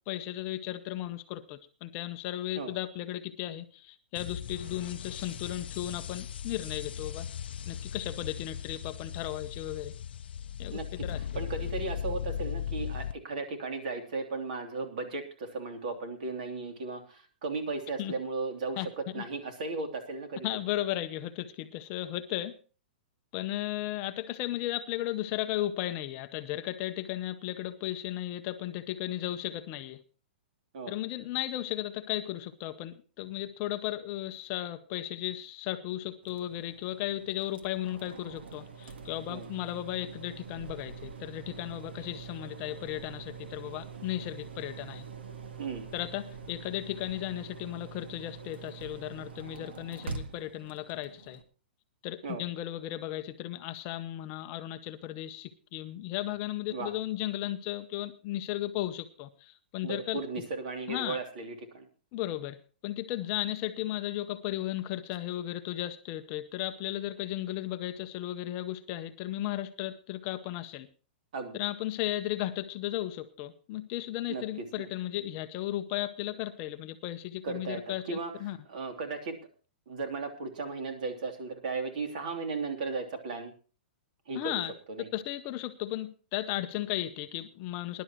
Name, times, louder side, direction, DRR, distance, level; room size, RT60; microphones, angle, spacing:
voice 1, 0.1-7.3 7.7-9.9 10.6-10.7 11.0-11.2 18.0-18.1 18.8-18.9 19.1-19.2 20.4-22.6 23.3-30.0 30.9-45.1 45.9-51.4 52.0-60.2 60.9-61.2 62.1-62.6 62.8-70.9 71.5-78.6 84.3-84.7 85.1-88.0, left 14 dB, 25° left, 9 dB, 0.6 m, -35 dB
sound 1, 4.2-13.1, left 8 dB, 75° left, 0.6 m, -38 dB
voice 2, 10.7-11.0 11.3-20.5 30.7-30.9 39.3-39.5 45.6-45.9 52.2-52.4 56.7-56.9 59.8-61.9 71.3-71.6 74.3-74.9 77.4-79.3 79.9-83.5 84.3-84.6 84.9-85.1, right 3 dB, 50° right, 5 dB, 2.9 m, -36 dB
sound 2, 36.2-51.4, right 5 dB, 90° right, 1.7 m, -45 dB
21.5 x 11.0 x 3.0 m, 0.36 s
hypercardioid pair, 170°, 6 cm